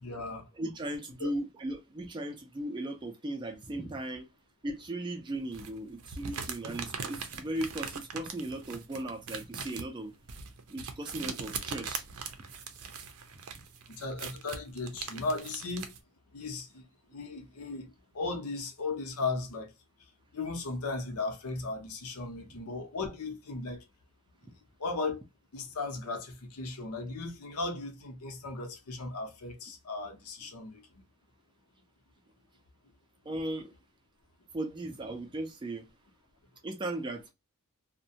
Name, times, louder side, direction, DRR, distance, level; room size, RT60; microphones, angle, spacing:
voice 1, 0.0-0.5 1.2-1.3 13.9-15.9 16.3-16.8 17.1-19.7 20.3-23.8 24.8-25.2 25.5-30.9, left 3 dB, 85° left, 0.7 m, -36 dB
voice 2, 0.6-4.3 4.6-10.1 10.7-12.1 33.3-33.7 34.5-35.9 36.6-37.3, right 1 dB, 20° right, 0.3 m, -37 dB
sound 1, 5.5-16.0, right 6 dB, 75° right, 0.5 m, -41 dB
2.5 x 2.1 x 2.7 m
head